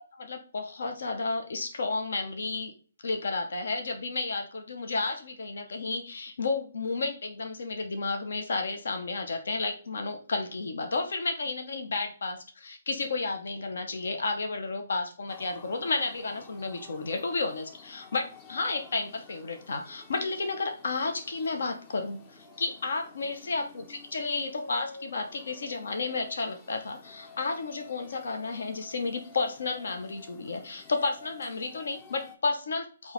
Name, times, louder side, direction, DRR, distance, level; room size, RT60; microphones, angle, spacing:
voice 1, 0.1-2.7 3.0-33.1, left 3 dB, 70° left, 5 dB, 0.8 m, -32 dB
sound 1, 15.3-32.4, left 5 dB, 25° left, 0.6 m, -51 dB
3.8 x 2.9 x 4.3 m, 0.40 s
figure-of-eight pair, 140°, 0 cm